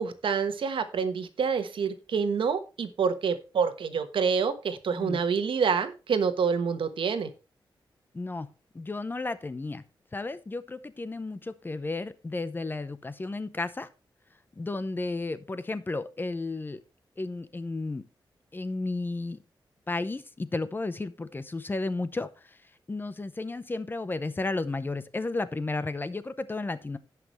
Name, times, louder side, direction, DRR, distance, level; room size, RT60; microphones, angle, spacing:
voice 1, 0.0-7.3, right 6 dB, 85° right, 9 dB, 1.2 m, -27 dB
voice 2, 8.1-8.5 8.7-9.8 10.1-13.9 14.6-16.8 17.2-18.0 18.5-19.4 19.9-27.0, left 3 dB, 25° left, 14 dB, 0.7 m, -33 dB
17.0 x 5.9 x 3.1 m, 0.31 s
wide cardioid pair, 140°, 8 cm